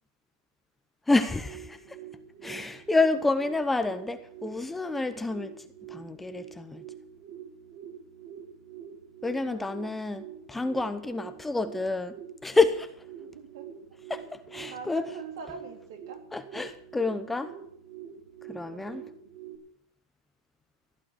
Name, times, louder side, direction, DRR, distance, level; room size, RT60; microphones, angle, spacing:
voice 1, 1.1-2.0 2.4-6.8 9.2-12.2 12.4-13.0 14.1-15.0 16.3-17.6 18.5-19.0, left 3 dB, 5° left, 0.7 m, -28 dB
sound 1, 1.2-19.6, right 9 dB, 45° right, 3.5 m, -46 dB
voice 2, 9.4-9.9 11.0-11.4 13.2-13.7 14.7-16.2 18.6-19.0, right 5 dB, 65° right, 3.7 m, -44 dB
15.5 x 8.8 x 8.3 m
supercardioid pair, 145°, 2 cm